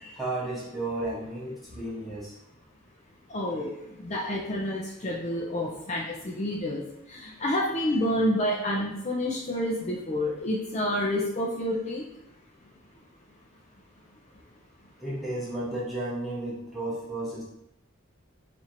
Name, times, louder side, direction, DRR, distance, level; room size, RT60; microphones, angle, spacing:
voice 1, 0.1-2.3 15.0-17.4, right 2 dB, ahead, -7 dB, 0.9 m, -33 dB
voice 2, 3.3-3.7 4.0-6.8 7.2-12.0, left 1 dB, 35° left, -4 dB, 0.5 m, -28 dB
2.8 x 2.6 x 4.3 m, 0.83 s
head